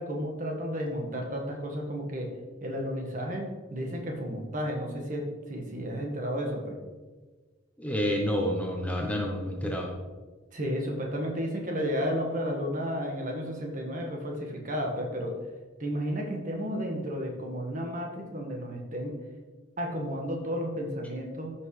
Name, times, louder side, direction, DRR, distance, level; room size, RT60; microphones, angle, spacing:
voice 1, 0.0-2.3 2.6-6.8 10.5-15.3 15.8-19.2 19.8-21.5, equal, 40° right, 1 dB, 1.6 m, -32 dB
voice 2, 7.8-9.9, equal, 5° left, 0 dB, 0.8 m, -29 dB
13.5 x 5.9 x 3.3 m, 1.3 s
head